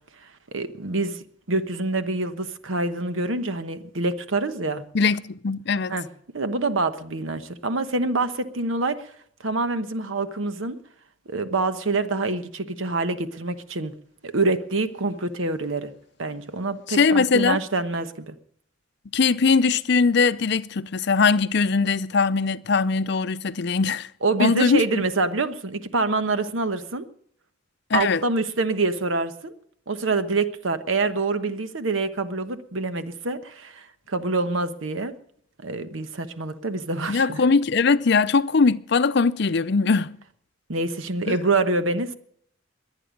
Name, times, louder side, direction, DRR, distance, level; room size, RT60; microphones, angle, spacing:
voice 1, 0.5-4.8 5.9-6.1 6.3-9.1 9.4-10.8 11.3-13.9 14.2-15.9 16.2-18.3 24.2-27.0 27.9-29.5 29.9-35.1 35.6-37.4 40.7-42.1, right 3 dB, 90° right, 1.1 m, -26 dB
voice 2, 4.9-5.9 16.9-17.6 19.1-24.1 24.4-25.0 27.9-28.2 37.1-40.2 41.3-41.4, left 4 dB, 60° left, 0.5 m, -21 dB
22.5 x 8.8 x 5.2 m
head